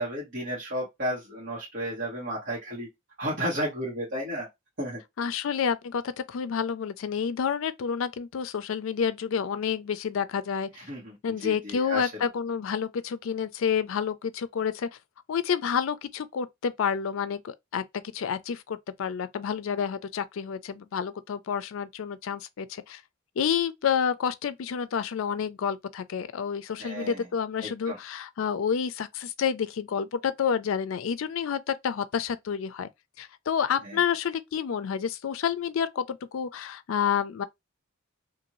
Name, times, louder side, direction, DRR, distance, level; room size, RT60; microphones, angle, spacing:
voice 1, 0.0-2.9 3.2-4.5 4.8-5.0 10.8-11.1 11.4-12.0 26.8-27.2 27.6-28.0, right 1 dB, 50° right, 1.4 m, -32 dB
voice 2, 5.2-10.7 11.2-14.9 15.3-17.8 18.1-23.0 23.4-32.9 33.2-37.4, left 7 dB, 70° left, 0.4 m, -29 dB
2.6 x 2.6 x 3.0 m
head